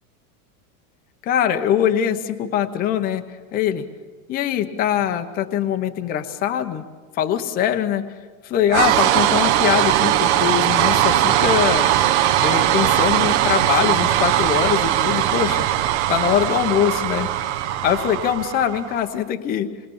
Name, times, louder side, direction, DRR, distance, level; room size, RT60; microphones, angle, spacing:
voice 1, 1.2-3.2 3.5-3.8 4.3-6.8 7.1-8.1 8.4-11.9 12.4-15.7 16.1-17.3 17.8-19.7, left 9 dB, 20° left, 7 dB, 0.8 m, -22 dB
sound 1, 8.7-19.0, right 12 dB, 50° right, 1.2 m, -19 dB
27.5 x 21.5 x 7.2 m, 1.5 s
supercardioid pair, 170°, 44 cm